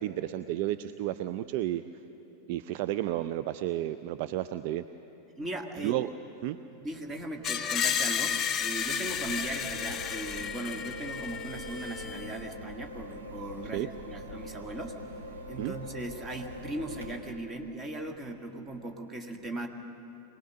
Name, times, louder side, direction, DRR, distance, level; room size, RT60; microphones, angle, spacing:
voice 1, 0.0-1.8 2.5-4.8 5.8-6.1 6.4-6.6 13.7-13.9 15.6-15.7, right 13 dB, 45° right, 11 dB, 0.4 m, -32 dB
voice 2, 5.4-6.1 6.5-15.0 15.5-19.7, right 1 dB, 20° right, 4 dB, 1.8 m, -38 dB
Screech, 7.4-12.4, left 7 dB, 25° left, 0.8 m, -32 dB
sound 1, 9.1-17.1, equal, 75° right, 2.3 m, -43 dB
24.0 x 19.0 x 6.4 m, 2.9 s
figure-of-eight pair, 90°, 0 cm